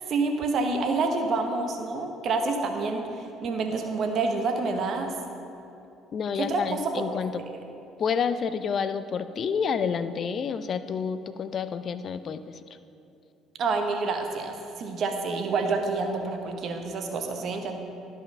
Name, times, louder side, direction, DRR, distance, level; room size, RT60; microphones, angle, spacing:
voice 1, 0.1-5.1 6.3-7.0 7.4-7.5 13.6-17.7, right 3 dB, 50° right, 4 dB, 1.0 m, -28 dB
voice 2, 6.1-7.4 8.0-12.4, left 6 dB, 45° left, 12 dB, 0.4 m, -29 dB
12.0 x 5.4 x 5.5 m, 2.8 s
figure-of-eight pair, 55°, 0 cm